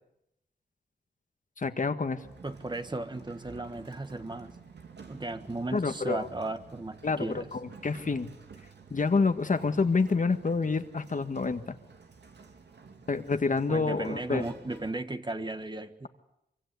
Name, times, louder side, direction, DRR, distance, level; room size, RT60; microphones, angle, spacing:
voice 1, 1.6-2.2 5.7-6.3 7.0-8.3 8.9-11.7 13.1-14.4, left 4 dB, 50° left, 8 dB, 1.6 m, -28 dB
Sliding door, 2.2-14.9, right 5 dB, 90° right, 2.9 m, -51 dB
voice 2, 2.4-4.6 5.1-7.5 13.7-16.1, right 2 dB, 25° right, 8 dB, 1.6 m, -35 dB
25.0 x 24.5 x 8.4 m, 0.85 s
wide cardioid pair, 95°, 17 cm